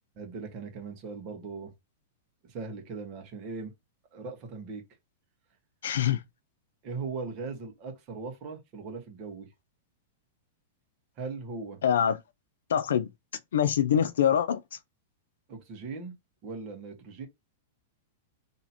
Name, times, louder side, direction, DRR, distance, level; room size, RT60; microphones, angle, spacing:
voice 1, 0.2-1.7 2.4-3.7 4.1-4.8 6.8-9.5 11.2-11.8 15.5-16.2 16.4-17.3, right 4 dB, 35° right, 1.4 m, -39 dB
voice 2, 5.8-6.2 11.8-12.2 12.7-13.1 13.5-14.6, left 9 dB, 85° left, 0.5 m, -24 dB
3.0 x 2.9 x 4.1 m
hypercardioid pair, 145°, 0 cm